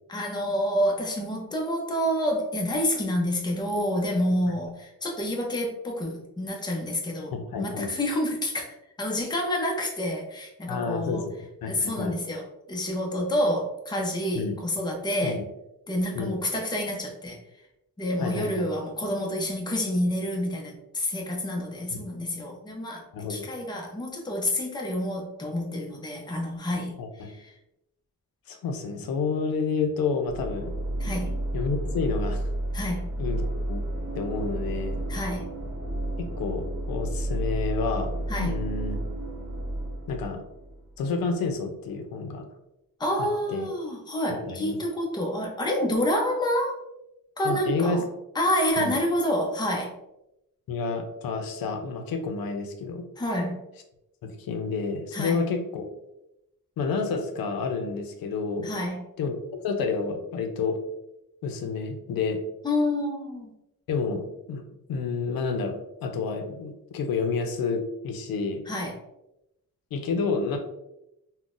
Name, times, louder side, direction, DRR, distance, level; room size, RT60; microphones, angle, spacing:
voice 1, 0.1-11.3 11.7-15.4 15.9-17.4 18.0-23.0 23.3-27.5 31.0-31.3 32.7-33.1 35.1-35.5 38.3-38.5 43.0-46.8 47.4-48.0 48.3-49.9 53.2-53.6 55.1-55.4 58.6-59.0 62.6-63.5 68.7-69.0, left 1 dB, 15° left, 0 dB, 0.5 m, -28 dB
voice 2, 7.3-7.9 10.7-12.2 14.3-14.6 15.2-15.4 16.1-16.4 18.2-18.7 21.9-22.1 23.1-23.5 27.0-27.3 28.5-30.7 31.5-32.5 33.2-33.8 34.1-35.0 36.2-38.1 38.4-39.0 40.1-40.4 41.0-42.5 43.2-43.7 44.4-44.8 47.4-48.0 48.8-49.0 50.7-53.1 54.2-55.9 56.8-58.7 59.2-59.4 59.6-60.8 61.4-62.4 63.9-64.6 64.9-68.6 69.9-70.6, left 4 dB, 85° left, 5 dB, 0.5 m, -29 dB
sound 1, 30.3-41.0, right 1 dB, 50° right, 0.7 m, -31 dB
3.7 x 2.1 x 2.4 m, 0.87 s
wide cardioid pair, 140°, 34 cm